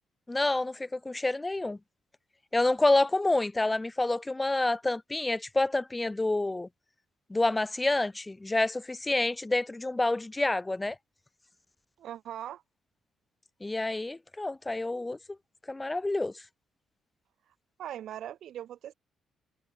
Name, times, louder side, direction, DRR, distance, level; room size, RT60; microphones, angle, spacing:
voice 1, 0.3-1.8 2.5-6.7 7.3-11.0 13.6-15.2 15.7-16.3, left 2 dB, 15° left, 0.9 m, -28 dB
voice 2, 12.0-12.6 17.8-18.9, right 11 dB, 70° right, 2.4 m, -40 dB
cardioid pair, 90°, 0 cm